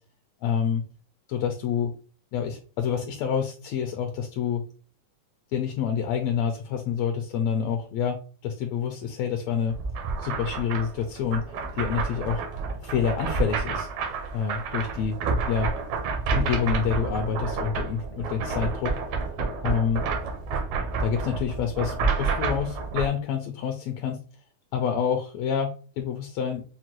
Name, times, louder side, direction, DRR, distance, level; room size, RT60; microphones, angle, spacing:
voice 1, 0.4-0.8 1.3-1.9 2.3-4.6 5.5-9.8 10.2-11.4 11.7-12.4 12.8-13.9 14.3-15.2 15.5-15.7 16.3-19.0 19.6-20.0 21.0-24.2 24.7-26.6, left 7 dB, 80° left, 4 dB, 1.6 m, -27 dB
sound 1, 9.7-23.1, right 4 dB, 75° right, 2.2 m, -29 dB
6.3 x 2.2 x 2.9 m, 0.37 s
omnidirectional pair, 3.5 m